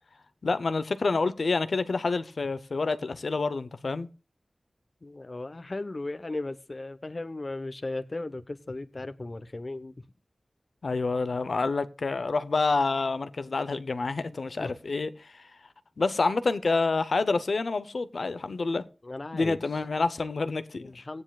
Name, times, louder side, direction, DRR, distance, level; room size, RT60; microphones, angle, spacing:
voice 1, 0.4-4.1 10.8-15.5 16.0-18.8 19.3-21.0, left 3 dB, 80° left, 0.7 m, -28 dB
voice 2, 5.0-10.0 14.6-14.7 19.0-19.6 20.8-21.2, left 2 dB, 50° left, 0.9 m, -36 dB
16.5 x 9.7 x 2.4 m
wide cardioid pair, 45°, 0 cm